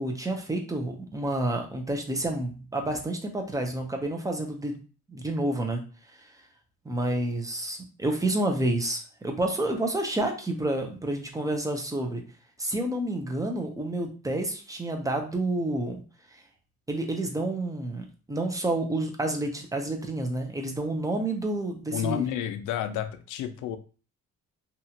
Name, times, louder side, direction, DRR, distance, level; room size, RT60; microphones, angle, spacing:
voice 1, 0.0-4.8 5.1-5.8 6.2-6.3 6.8-12.2 12.6-16.0 16.9-22.3, right 1 dB, 10° right, 2 dB, 0.7 m, -29 dB
voice 2, 21.9-23.8, left 10 dB, 85° left, 8 dB, 0.5 m, -30 dB
2.8 x 2.4 x 2.8 m, 0.36 s
cardioid pair, 90°, 30 cm